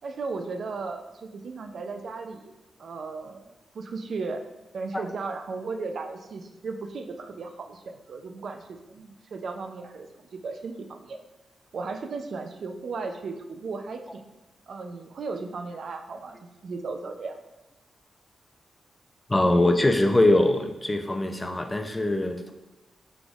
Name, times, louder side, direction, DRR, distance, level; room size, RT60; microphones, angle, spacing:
voice 1, 0.0-2.5 2.8-4.5 4.7-11.2 11.7-14.3 14.7-17.4, right 4 dB, 70° right, 6 dB, 0.4 m, -36 dB
voice 2, 19.3-22.5, left 1 dB, 20° left, 6 dB, 0.5 m, -22 dB
5.9 x 3.5 x 2.4 m, 1.0 s
cardioid pair, 60°, 0 cm